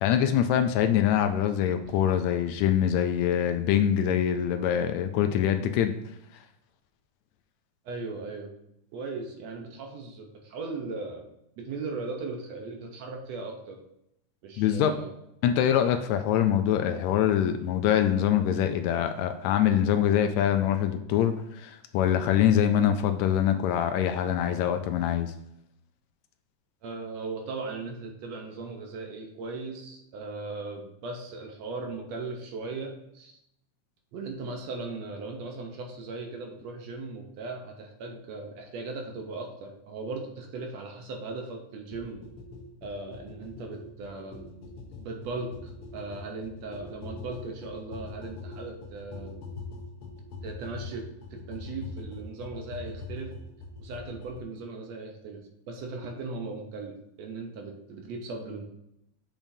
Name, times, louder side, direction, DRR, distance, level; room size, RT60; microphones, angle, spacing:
voice 1, 0.0-5.9 14.6-14.9 15.4-25.3, left 10 dB, 80° left, 8 dB, 1.7 m, -24 dB
voice 2, 7.9-8.5 8.9-11.3 11.6-13.8 14.4-15.1 26.8-33.4 34.1-42.2 42.8-44.5 45.0-49.4 50.4-53.3 53.8-55.4 55.7-58.6, right 3 dB, 70° right, 2 dB, 2.0 m, -38 dB
sound 1, 41.9-54.4, left 3 dB, 65° left, 1.5 m, -43 dB
7.2 x 7.0 x 2.7 m, 0.80 s
omnidirectional pair, 3.3 m